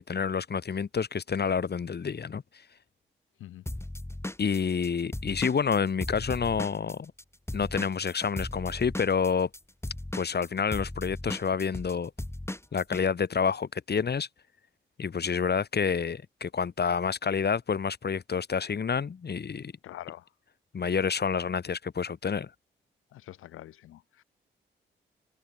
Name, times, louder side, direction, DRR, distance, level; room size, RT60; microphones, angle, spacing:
voice 1, 0.0-2.4 4.4-7.1 7.5-9.5 10.1-12.1 12.7-14.3 15.0-19.7 20.7-22.5, left 6 dB, 50° left, 2.7 m, -28 dB
Drum kit / Drum, 3.7-7.2 7.5-13.0, left 1 dB, 10° left, 2.8 m, -37 dB
voice 2, 19.8-20.3 23.1-24.2, left 13 dB, 80° left, 7.9 m, -45 dB
hypercardioid pair, 40°, 21 cm